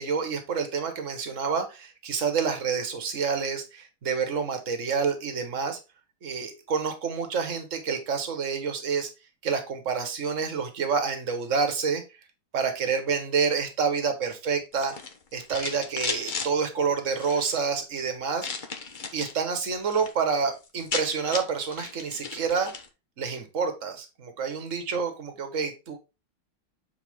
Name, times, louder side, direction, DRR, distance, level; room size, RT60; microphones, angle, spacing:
voice 1, 0.0-5.8 6.2-9.1 9.4-12.0 12.5-14.9 15.3-18.5 19.1-22.7 23.2-26.0, right 5 dB, 40° right, 7 dB, 1.6 m, -28 dB
sound 1, 14.7-16.5 17.1-17.6 18.4-19.4 19.7-20.1 20.4-20.5 20.7-22.9, left 4 dB, 40° left, 0.6 m, -35 dB
8.2 x 4.6 x 3.7 m, 0.27 s
omnidirectional pair, 2.3 m